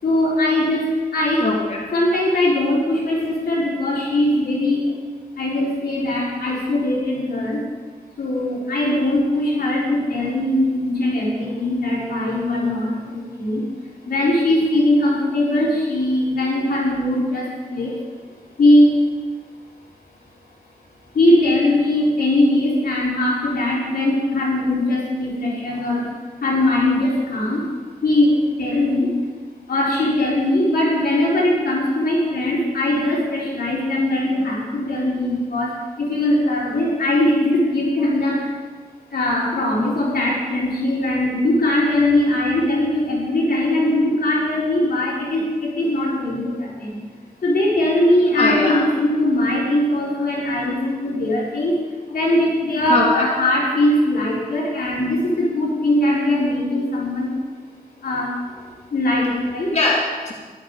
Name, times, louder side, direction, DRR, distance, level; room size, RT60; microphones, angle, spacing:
voice 1, 0.0-0.9 1.1-1.4 1.9-4.8 5.4-7.6 8.2-13.6 14.1-17.9 18.6-18.9 21.1-26.0 26.4-27.6 28.0-28.3 28.6-29.1 29.7-35.7 36.0-38.5 39.1-47.0 47.4-51.8 52.1-57.3 58.0-58.3 58.9-59.7, left 1 dB, 90° left, -5 dB, 4.2 m, -20 dB
voice 2, 1.4-1.9 25.7-25.9 48.3-48.8 52.9-53.3 59.7-60.3, left 3 dB, 45° left, -3 dB, 2.6 m, -21 dB
13.5 x 11.5 x 4.9 m, 1.5 s
cardioid pair, 60°, 15 cm